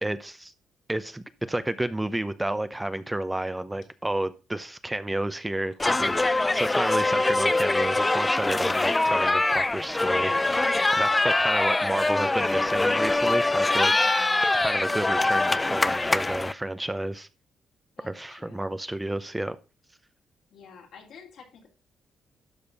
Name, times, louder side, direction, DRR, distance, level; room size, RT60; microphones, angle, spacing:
voice 1, 0.0-0.5 0.9-13.9 14.6-17.3 18.0-19.6, right 1 dB, 10° right, 12 dB, 0.7 m, -31 dB
sound 1, 5.8-16.5, left 2 dB, 20° left, 0.4 m, -23 dB
voice 2, 13.8-15.1 18.0-19.2 20.5-21.7, left 5 dB, 75° left, 1 dB, 3.1 m, -52 dB
12.0 x 4.4 x 5.2 m, 0.31 s
cardioid pair, 85°, 0 cm